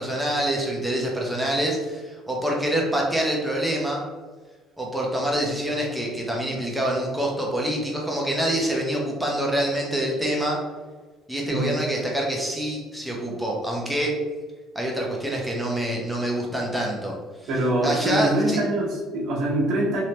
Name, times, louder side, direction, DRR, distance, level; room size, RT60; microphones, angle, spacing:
voice 1, 0.0-4.0 4.8-10.6 11.3-14.2 14.7-17.1 17.8-18.6, right 1 dB, 5° right, -2 dB, 0.8 m, -26 dB
voice 2, 11.5-11.9 17.5-20.0, right 1 dB, 60° right, -3 dB, 1.0 m, -24 dB
3.2 x 2.8 x 2.9 m, 1.4 s
cardioid pair, 125°, 0 cm